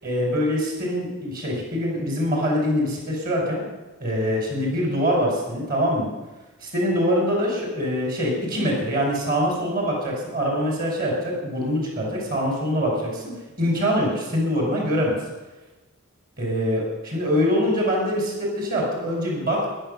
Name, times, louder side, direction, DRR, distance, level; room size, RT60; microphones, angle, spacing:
voice 1, 0.0-3.7 4.0-6.1 6.6-13.2 13.6-15.2 16.4-19.7, equal, 45° right, -1 dB, 5.3 m, -24 dB
14.0 x 11.0 x 7.0 m, 1.2 s
head